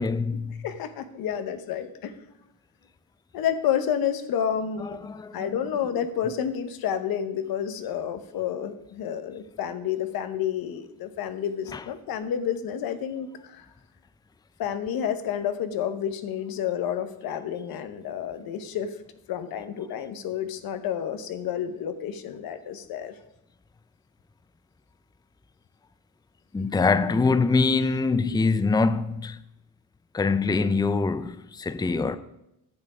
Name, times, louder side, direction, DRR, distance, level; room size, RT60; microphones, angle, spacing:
voice 1, 0.0-0.6 4.8-5.5 11.7-11.8 26.5-29.4 30.1-32.2, left 4 dB, 10° left, 0.5 m, -24 dB
voice 2, 0.6-2.1 3.3-5.1 5.3-13.7 14.6-18.9 19.3-23.1, left 9 dB, 85° left, 0.9 m, -30 dB
9.6 x 6.9 x 4.9 m
cardioid pair, 80°, 35 cm